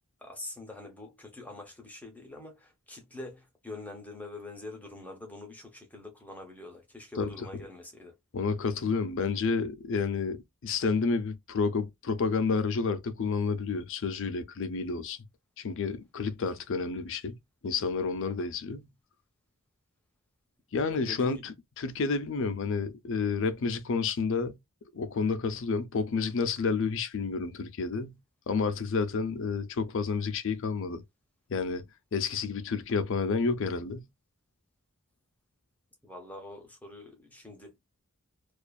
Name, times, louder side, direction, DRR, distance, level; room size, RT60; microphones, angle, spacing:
voice 1, 0.2-8.1 21.1-21.4 36.0-37.7, left 2 dB, 5° left, 0.6 m, -45 dB
voice 2, 7.2-7.7 8.3-15.2 15.6-17.4 17.6-18.9 20.7-24.6 24.9-28.2 28.5-31.0 31.5-31.8 32.1-34.1, left 4 dB, 60° left, 0.5 m, -30 dB
2.4 x 2.4 x 2.2 m
head